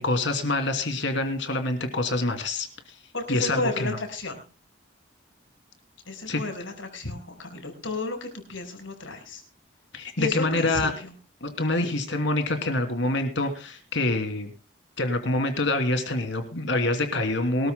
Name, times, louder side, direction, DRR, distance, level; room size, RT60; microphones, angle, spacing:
voice 1, 0.0-2.7 3.3-4.0 6.3-6.4 9.9-10.9 11.4-14.5 15.0-17.7, left 2 dB, 70° left, 6 dB, 2.8 m, -26 dB
voice 2, 3.1-4.4 6.1-9.4 10.2-11.1 11.8-11.9, left 2 dB, 85° left, 5 dB, 5.3 m, -32 dB
23.5 x 13.5 x 2.2 m, 0.36 s
head